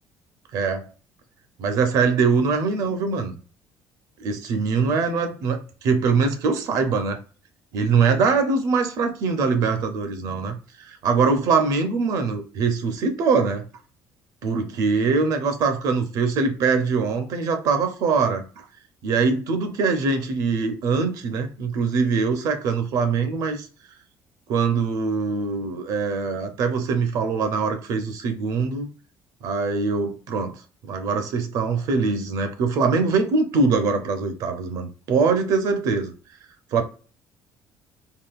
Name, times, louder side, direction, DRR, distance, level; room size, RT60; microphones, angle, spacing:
voice 1, 0.5-0.9 1.6-3.4 4.2-7.2 7.7-13.6 14.4-18.6 19.0-23.7 24.5-28.9 29.4-30.6 30.9-36.1 36.7-36.8, right 4 dB, 65° right, 0.6 m, -23 dB
3.6 x 2.2 x 2.3 m
cardioid pair, 150°, 7 cm